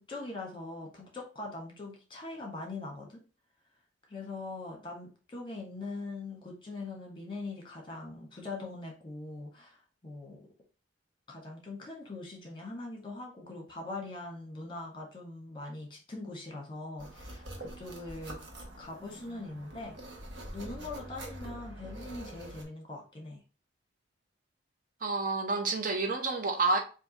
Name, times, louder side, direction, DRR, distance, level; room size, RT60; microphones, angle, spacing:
voice 1, 0.0-3.2 4.1-10.4 11.3-18.4 18.8-20.0 20.5-23.4, left 2 dB, 25° left, 1.3 m, -42 dB
sound 1, 17.0-22.6, right 1 dB, 75° right, 1.0 m, -45 dB
voice 2, 25.0-26.8, right 3 dB, 50° right, 0.6 m, -29 dB
3.5 x 2.7 x 3.9 m
head